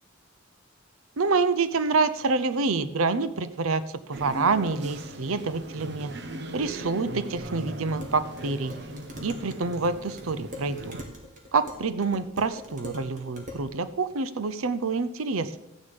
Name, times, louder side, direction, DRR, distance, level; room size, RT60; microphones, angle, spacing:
voice 1, 1.2-3.8 4.1-6.1 6.5-8.7 9.2-11.0 11.5-15.6, right 4 dB, 80° right, 13 dB, 0.7 m, -27 dB
sound 1, 4.1-11.0, right 1 dB, 50° right, 1.1 m, -39 dB
Dishes pots and pans, 7.4-13.7, left 1 dB, 35° right, 2.1 m, -44 dB
13.5 x 10.0 x 5.3 m, 0.90 s
head